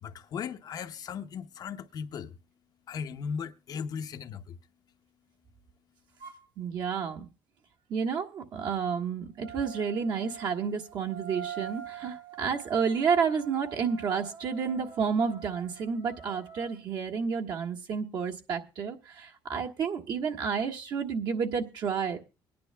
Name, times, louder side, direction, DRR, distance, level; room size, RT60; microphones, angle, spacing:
voice 1, 0.0-2.3 2.9-4.6, left 6 dB, 50° left, 0.7 m, -37 dB
sound 1, 6.2-6.5 9.4-16.8, right 9 dB, 80° right, 3.2 m, -45 dB
voice 2, 6.6-7.3 7.9-22.2, right 6 dB, 60° right, 1.4 m, -30 dB
24.0 x 10.5 x 2.2 m
cardioid pair, 125°, 9 cm